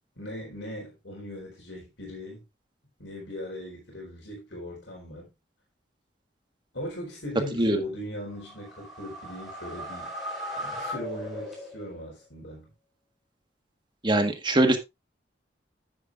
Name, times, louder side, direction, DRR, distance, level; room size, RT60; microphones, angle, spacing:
voice 1, 0.2-2.4 3.0-5.3 6.7-10.1 10.6-12.7, left 1 dB, 85° left, 4.5 m, -39 dB
sound 1, 8.3-12.1, equal, ahead, 4.5 m, -38 dB
voice 2, 14.0-14.8, right 1 dB, 25° right, 1.5 m, -22 dB
9.7 x 9.6 x 2.5 m
head